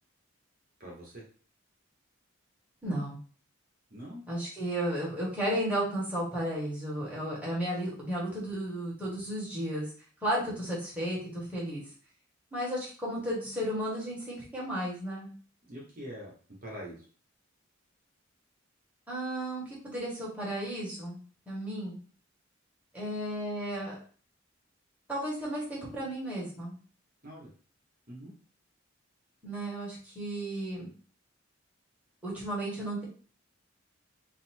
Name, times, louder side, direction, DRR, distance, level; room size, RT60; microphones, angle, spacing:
voice 1, 0.8-1.2 3.9-4.2 15.7-16.3 16.6-17.1 27.2-27.5 28.1-28.3, equal, 45° right, -3 dB, 1.2 m, -43 dB
voice 2, 2.8-3.2 4.3-9.9 10.2-11.8 12.5-15.3 19.1-21.2 21.5-22.0 22.9-24.0 25.1-26.7 29.4-30.9 32.2-33.0, right 1 dB, 5° right, -6 dB, 1.4 m, -33 dB
4.0 x 2.2 x 4.4 m, 0.42 s
head